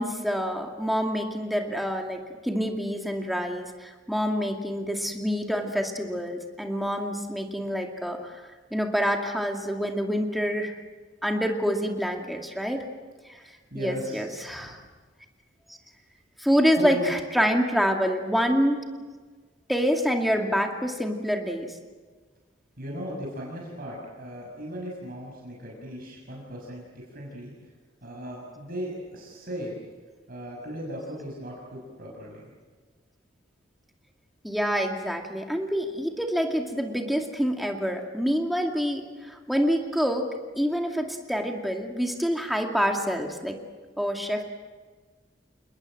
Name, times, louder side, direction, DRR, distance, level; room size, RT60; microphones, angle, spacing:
voice 1, 0.0-8.4 8.7-10.7 11.2-12.9 13.3-13.4 13.7-14.8 16.4-18.8 19.7-21.8 34.4-40.3 40.6-43.6 44.0-44.4, equal, ahead, 2 dB, 2.3 m, -27 dB
voice 2, 13.7-14.7 16.8-17.1 22.8-27.5 28.0-29.8 30.3-32.4, equal, 50° right, -2 dB, 6.3 m, -37 dB
28.0 x 21.0 x 7.8 m, 1.4 s
head